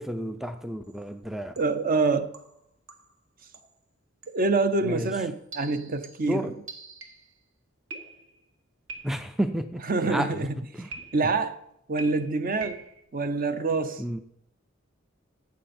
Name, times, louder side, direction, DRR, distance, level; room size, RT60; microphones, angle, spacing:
voice 1, 0.0-1.5 4.8-5.1 6.3-6.5 9.0-10.5 10.8-10.9 14.0-14.2, right 1 dB, ahead, 0.4 m, -31 dB
sound 1, 0.8-1.1 1.6-1.9 2.3-3.2 3.5-3.8 4.2-4.5 5.1-7.4 7.9-8.5 8.9-9.5 10.9-11.5 12.0-13.0, right 4 dB, 65° right, 1.7 m, -44 dB
voice 2, 1.6-2.3 4.3-6.6 9.8-10.7 11.1-11.6 11.9-12.8 13.1-14.0, right 3 dB, 40° right, 0.7 m, -26 dB
14.5 x 7.7 x 4.2 m
head